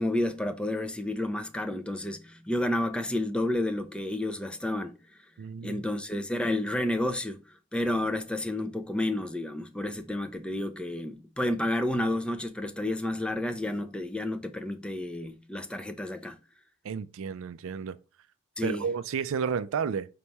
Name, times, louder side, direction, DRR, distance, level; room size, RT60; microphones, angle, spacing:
voice 1, 0.0-5.0 5.6-16.4 18.6-18.8, left 1 dB, 5° left, 0.4 m, -30 dB
voice 2, 5.4-5.8 16.8-18.0 18.6-20.1, right 6 dB, 65° right, 0.4 m, -31 dB
5.3 x 2.9 x 3.4 m
head